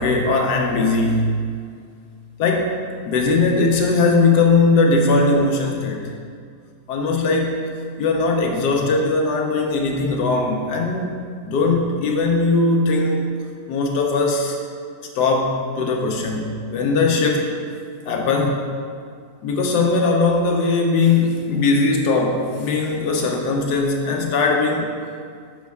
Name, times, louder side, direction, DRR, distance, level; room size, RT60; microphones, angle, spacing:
voice 1, 0.0-1.4 2.4-2.8 3.0-6.1 6.9-7.6 8.0-11.1 11.4-13.3 13.7-14.6 15.2-17.5 18.1-18.6 19.4-24.9, left 3 dB, 70° left, 1 dB, 1.3 m, -19 dB
6.3 x 5.3 x 3.4 m, 2.1 s
omnidirectional pair, 1.9 m